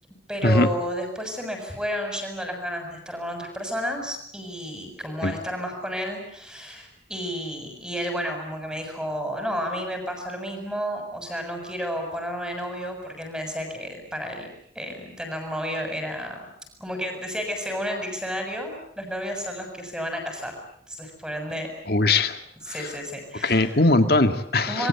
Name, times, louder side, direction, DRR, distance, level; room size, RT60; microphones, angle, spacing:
voice 1, 0.3-14.5 14.8-16.5 16.8-20.5 20.9-21.7 22.6-23.8 24.7-24.9, equal, 5° right, 4 dB, 7.1 m, -31 dB
voice 2, 21.9-22.4 23.4-24.9, left 2 dB, 55° left, 8 dB, 2.1 m, -20 dB
27.5 x 23.0 x 8.4 m, 0.70 s
head